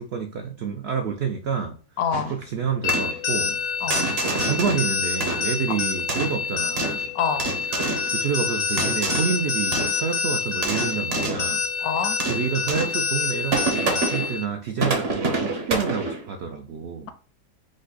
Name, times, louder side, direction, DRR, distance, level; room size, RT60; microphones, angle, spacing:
voice 1, 0.0-1.8 2.3-3.6 4.4-7.1 8.1-11.6 12.3-17.1, right 6 dB, 75° right, 0.6 m, -28 dB
voice 2, 2.0-2.3 3.8-4.0 5.7-5.8 7.1-7.5 11.8-12.2, left 7 dB, 75° left, 1.0 m, -26 dB
sound 1, 2.1-2.4 2.9-3.2 3.9-4.9 5.2-5.7 6.1-7.0 7.4-8.1 8.7-9.4 9.7-10.0 10.4-11.5 12.2-13.0 13.5-14.3 14.8-16.3, right 3 dB, 45° right, 1.0 m, -27 dB
sound 2, 2.8-14.4, left 5 dB, 45° left, 0.5 m, -27 dB
5.1 x 2.1 x 3.9 m
omnidirectional pair, 1.6 m